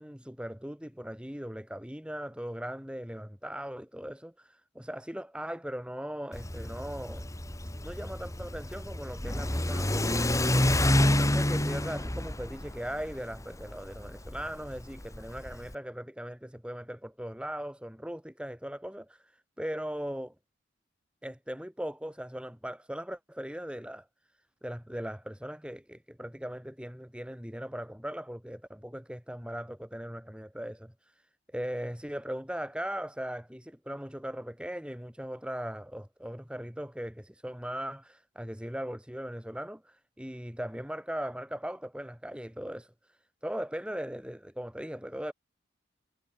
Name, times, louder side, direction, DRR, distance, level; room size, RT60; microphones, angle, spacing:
voice 1, 0.0-7.2 7.8-20.3 21.2-24.0 24.6-31.1 31.5-42.9 43.4-45.3, equal, 5° right, 5.1 m, -39 dB
Car / Accelerating revving vroom, 6.3-15.7, left 1 dB, 15° left, 1.7 m, -29 dB
head